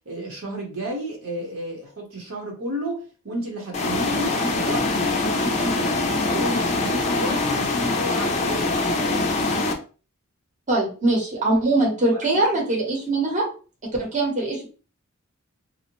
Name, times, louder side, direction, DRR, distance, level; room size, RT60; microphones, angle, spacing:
voice 1, 0.1-5.9 6.2-9.3 11.8-12.6, right 1 dB, 65° right, 0 dB, 0.9 m, -32 dB
sound 1, 3.7-9.7, left 3 dB, 30° left, 0.4 m, -23 dB
voice 2, 10.7-13.5 14.0-14.6, right 2 dB, 35° right, -1 dB, 0.8 m, -22 dB
2.6 x 2.1 x 2.9 m, 0.37 s
head